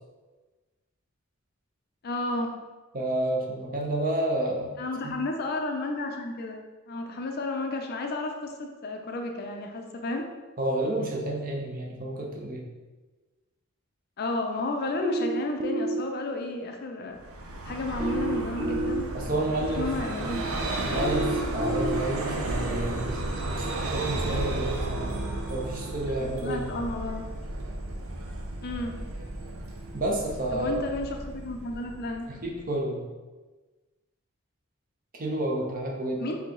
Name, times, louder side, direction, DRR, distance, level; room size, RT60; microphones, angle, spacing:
voice 1, 2.0-2.5 4.8-6.6 6.9-10.2 14.2-17.2 17.6-19.4 19.8-20.5 26.2-27.3 28.6-29.0 30.5-32.2 36.2-36.4, left 2 dB, 50° left, 3 dB, 0.5 m, -32 dB
voice 2, 2.9-4.7 5.0-5.1 10.6-12.6 19.1-20.3 20.8-23.2 23.5-25.2 25.5-26.7 29.9-30.8 32.3-33.0 35.1-36.4, right 1 dB, 40° right, -1 dB, 0.7 m, -30 dB
sound 1, 15.0-16.0 18.0-19.0 21.0-22.0, right 2 dB, 20° right, 0.4 m, -29 dB
Vehicle, 17.2-32.6, right 2 dB, 85° right, 0.6 m, -33 dB
4.7 x 2.8 x 3.7 m, 1.2 s
head